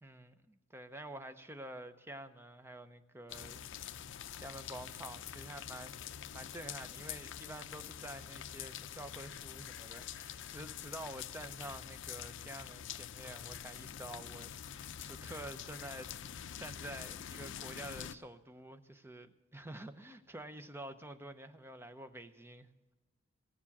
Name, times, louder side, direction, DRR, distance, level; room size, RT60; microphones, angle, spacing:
voice 1, 0.0-4.1 4.4-6.0 6.3-16.1 16.6-22.7, right 1 dB, 10° right, 0.7 m, -48 dB
sound 1, 3.3-18.2, left 9 dB, 65° left, 0.5 m, -46 dB
16.0 x 7.2 x 7.2 m
head